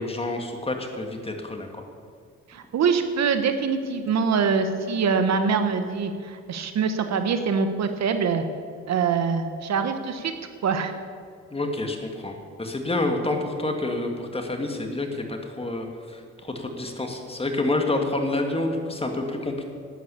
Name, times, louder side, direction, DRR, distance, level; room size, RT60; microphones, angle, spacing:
voice 1, 0.0-1.8 11.5-19.6, left 2 dB, 20° left, 3 dB, 2.1 m, -28 dB
voice 2, 2.5-8.4 8.9-10.3 10.6-10.9, right 5 dB, 60° right, 8 dB, 1.3 m, -24 dB
11.5 x 9.3 x 8.5 m, 2.1 s
cardioid pair, 90°, 30 cm